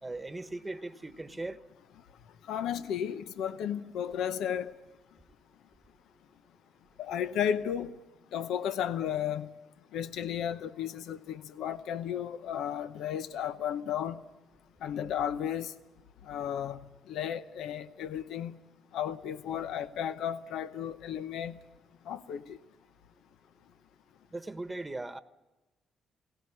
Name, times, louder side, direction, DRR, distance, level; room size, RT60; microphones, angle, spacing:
voice 1, 0.0-1.6 24.3-25.2, right 2 dB, 15° right, 1.2 m, -38 dB
voice 2, 2.5-4.7 7.0-7.9 8.3-9.5 9.9-14.2 14.8-15.7 16.3-16.8 17.1-18.6 18.9-21.6 22.1-22.6, left 9 dB, 80° left, 0.8 m, -34 dB
21.0 x 17.5 x 9.8 m
cardioid pair, 90°, 0 cm